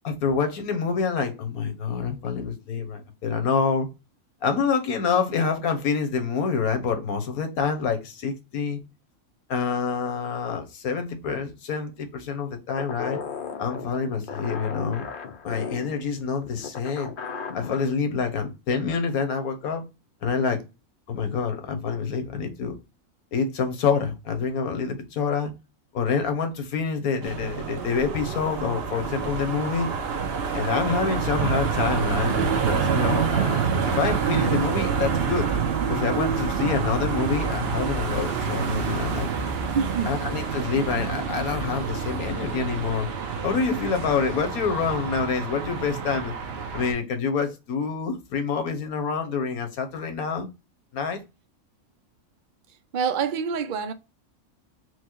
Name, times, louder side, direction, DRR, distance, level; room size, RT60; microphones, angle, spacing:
voice 1, 0.0-3.9 4.4-8.8 9.5-13.2 13.6-15.1 15.4-17.1 17.5-19.9 20.2-20.6 21.1-22.7 23.3-25.5 25.9-29.9 30.5-35.5 35.9-39.3 40.1-43.1 43.4-46.3 46.7-50.5 50.9-51.2, left 5 dB, 85° left, 1.4 m, -27 dB
sound 1, 12.8-17.9, left 6 dB, 60° left, 0.5 m, -36 dB
sound 2, 27.2-46.9, right 6 dB, 55° right, 0.9 m, -27 dB
voice 2, 39.7-40.2 52.9-53.9, right 6 dB, 80° right, 0.4 m, -26 dB
4.6 x 2.1 x 4.4 m
omnidirectional pair, 1.5 m